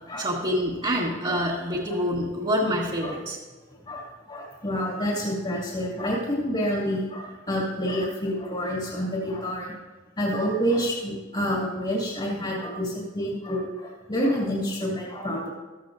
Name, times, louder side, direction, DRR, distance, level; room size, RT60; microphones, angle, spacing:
voice 1, 0.2-3.4, equal, 30° right, -6 dB, 1.6 m, -26 dB
voice 2, 3.9-9.7 10.2-15.5, equal, 30° left, -3 dB, 2.3 m, -28 dB
15.0 x 14.0 x 2.6 m, 1.3 s
head